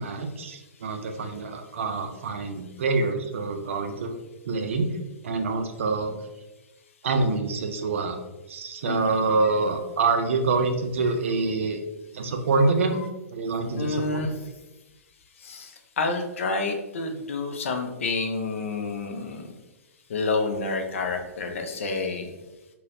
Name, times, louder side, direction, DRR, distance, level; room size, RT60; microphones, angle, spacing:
voice 1, 0.0-4.1 4.5-4.9 5.2-6.1 7.0-8.2 8.5-11.8 12.1-13.0 13.3-14.3, right 3 dB, 55° right, 6 dB, 0.4 m, -26 dB
voice 2, 8.8-9.2 13.0-13.1 13.7-14.4 15.4-19.5 20.1-22.3, left 3 dB, 55° left, 5 dB, 0.5 m, -29 dB
3.8 x 2.1 x 2.6 m, 1.0 s
figure-of-eight pair, 115°, 8 cm